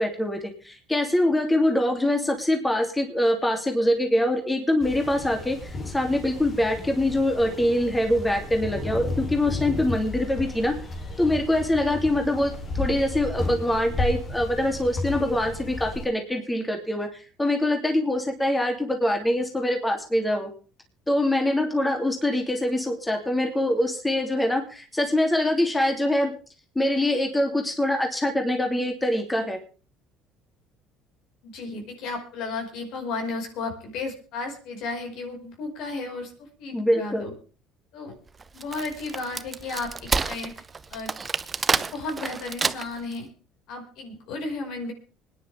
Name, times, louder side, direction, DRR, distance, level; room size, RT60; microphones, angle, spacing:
voice 1, 0.0-10.7 11.2-20.5 21.1-26.3 26.7-29.6 36.7-37.3, left 1 dB, 10° left, 3 dB, 2.8 m, -24 dB
sound 1, 4.8-16.1, left 2 dB, 40° left, 3.3 m, -33 dB
voice 2, 31.4-37.3 37.9-38.1 38.5-40.5 40.9-41.1 41.7-43.3 43.7-44.9, left 3 dB, 70° left, 3 dB, 5.1 m, -34 dB
Wood, 38.4-43.1, right 4 dB, 25° right, 0.8 m, -28 dB
25.5 x 10.0 x 3.4 m, 0.37 s
supercardioid pair, 90°, 0 cm